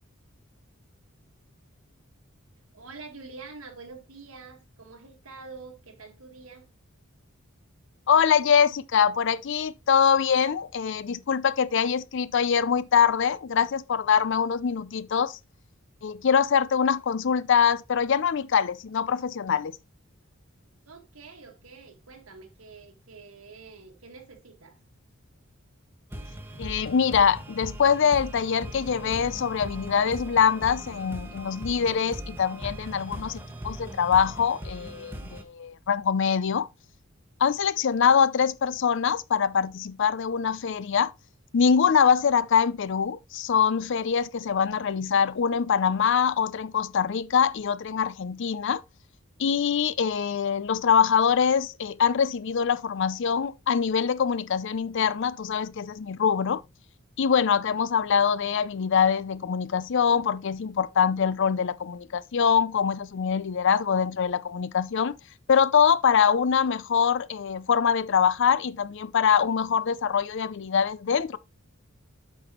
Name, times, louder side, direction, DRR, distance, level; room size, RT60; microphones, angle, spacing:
voice 1, 2.7-6.7 20.9-24.8, right 4 dB, 85° right, 1.8 m, -46 dB
voice 2, 8.1-15.4 16.0-19.8 26.6-36.7 37.4-41.1 41.5-48.8 49.4-56.6 57.2-65.1 65.5-71.4, left 7 dB, 60° left, 0.5 m, -24 dB
sound 1, 26.1-35.4, equal, 10° right, 1.0 m, -39 dB
8.2 x 5.9 x 3.0 m
head